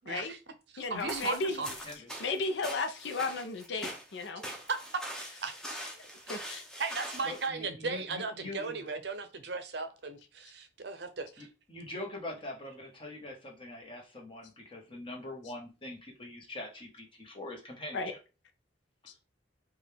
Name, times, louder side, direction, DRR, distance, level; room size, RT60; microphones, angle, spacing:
voice 1, 0.0-0.4 0.7-1.7 4.4-4.8 5.4-5.5 6.8-11.5, right 4 dB, 60° right, 9 dB, 0.6 m, -36 dB
voice 2, 0.8-1.6 2.2-4.4 6.3-6.6 17.9-18.1, left 3 dB, 70° left, 7 dB, 0.6 m, -34 dB
sound 1, 0.8-7.5, equal, 5° left, 0.7 m, -43 dB
voice 3, 7.2-8.8 11.4-18.2, left 1 dB, 30° left, 0 dB, 1.2 m, -43 dB
5.1 x 2.4 x 3.4 m, 0.31 s
head